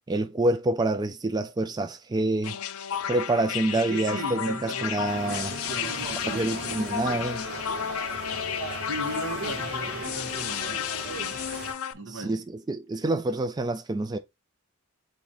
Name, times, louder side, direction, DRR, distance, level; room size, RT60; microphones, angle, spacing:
voice 1, 0.1-2.6 3.1-5.6 6.2-7.4 12.1-14.2, right 2 dB, 20° right, 0.3 m, -27 dB
sound 1, 2.4-11.9, left 9 dB, 75° left, 0.4 m, -32 dB
voice 2, 3.7-7.3 8.8-11.4 11.9-12.5, right 2 dB, 90° right, 1.3 m, -38 dB
sound 2, 5.0-11.7, right 3 dB, 65° right, 2.5 m, -38 dB
4.0 x 3.9 x 2.9 m
head